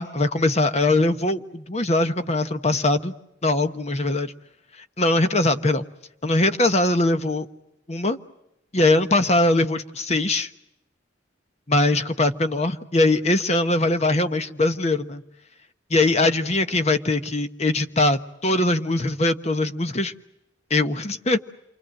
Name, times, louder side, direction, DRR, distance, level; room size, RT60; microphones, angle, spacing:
voice 1, 0.0-3.1 3.4-4.3 5.0-5.8 6.2-7.5 7.9-8.2 8.7-10.5 11.7-15.2 15.9-20.1 20.7-21.4, left 2 dB, 35° left, 9 dB, 1.2 m, -21 dB
28.5 x 24.5 x 7.8 m, 0.86 s
head